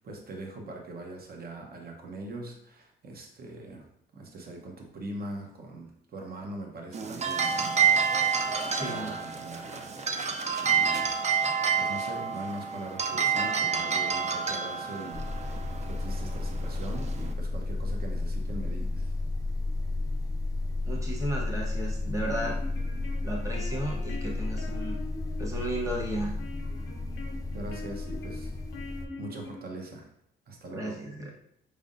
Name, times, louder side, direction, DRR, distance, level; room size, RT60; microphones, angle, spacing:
voice 1, 0.0-3.9 4.1-11.1 11.8-19.2 27.5-28.5 29.2-30.1 30.5-31.0, right 2 dB, 50° right, 1 dB, 1.0 m, -42 dB
sound 1, 6.9-17.3, right 6 dB, 35° right, 0.5 m, -29 dB
voice 2, 8.7-9.1 20.9-22.6 23.2-25.0 25.4-26.3 30.7-31.3, right 1 dB, 15° right, -2 dB, 1.2 m, -34 dB
sound 2, 15.1-29.1, left 2 dB, 15° left, 0.4 m, -32 dB
sound 3, 22.0-30.0, left 2 dB, 90° left, 0.7 m, -44 dB
5.3 x 3.4 x 2.6 m, 0.75 s
cardioid pair, 90°, 20 cm